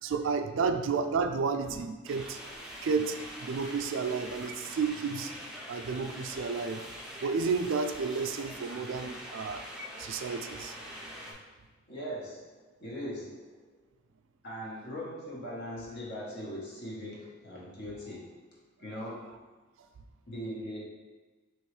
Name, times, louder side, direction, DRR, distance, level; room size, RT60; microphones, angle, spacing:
voice 1, 0.0-2.4 2.8-5.3 5.7-6.8 7.2-9.6 10.0-10.7, right 5 dB, 70° right, 8 dB, 0.3 m, -31 dB
sound 1, 2.1-11.3, equal, 5° right, 0.5 m, -44 dB
voice 2, 11.9-12.5 12.8-13.5 14.4-18.3 18.8-19.4 20.3-20.8, equal, 55° left, -5 dB, 1.1 m, -40 dB
4.4 x 3.1 x 3.2 m, 1.3 s
head